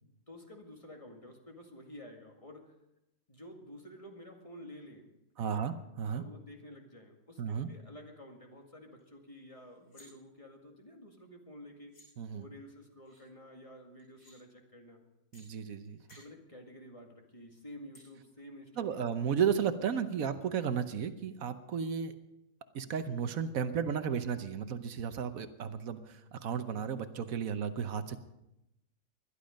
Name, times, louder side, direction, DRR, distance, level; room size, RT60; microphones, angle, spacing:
voice 1, 0.0-2.8 3.3-5.1 5.4-5.7 6.1-12.0 12.3-15.0 16.2-19.1, left 1 dB, 25° left, 2 dB, 2.0 m, -51 dB
voice 2, 5.4-6.2 7.4-7.7 12.2-12.5 15.3-16.0 18.8-22.2 22.7-28.2, right 7 dB, 80° right, 10 dB, 1.3 m, -34 dB
sound 1, 9.0-9.1 9.4-10.1 11.5-11.6 11.9-12.1 13.0-13.2 14.0-14.4 15.3-15.4 15.9-16.2 17.9-18.1, left 1 dB, 85° left, 6.9 m, -59 dB
20.5 x 12.0 x 5.2 m, 0.89 s
omnidirectional pair, 1.4 m